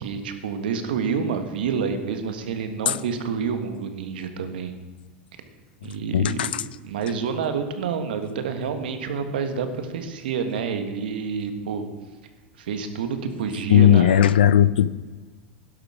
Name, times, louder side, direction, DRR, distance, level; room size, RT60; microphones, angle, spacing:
voice 1, 0.0-4.8 5.8-6.5 6.8-11.9 12.6-14.4, right 6 dB, 80° right, 8 dB, 1.6 m, -28 dB
voice 2, 6.1-6.6 13.7-14.9, left 10 dB, 90° left, 18 dB, 0.5 m, -17 dB
11.5 x 11.5 x 5.0 m, 1.3 s
hypercardioid pair, 105°, 5 cm